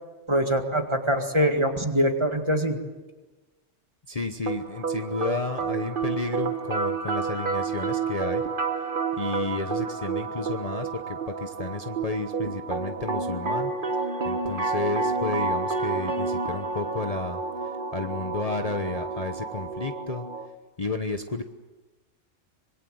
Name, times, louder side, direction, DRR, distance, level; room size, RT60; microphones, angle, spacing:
voice 1, 0.3-2.8, equal, 25° right, 5 dB, 2.0 m, -23 dB
voice 2, 4.1-8.5 9.1-20.3 20.8-21.4, left 3 dB, 35° left, 6 dB, 1.0 m, -32 dB
sound 1, 4.5-20.5, right 4 dB, 45° right, 1.5 m, -30 dB
25.5 x 22.0 x 7.9 m, 1.2 s
omnidirectional pair, 1.3 m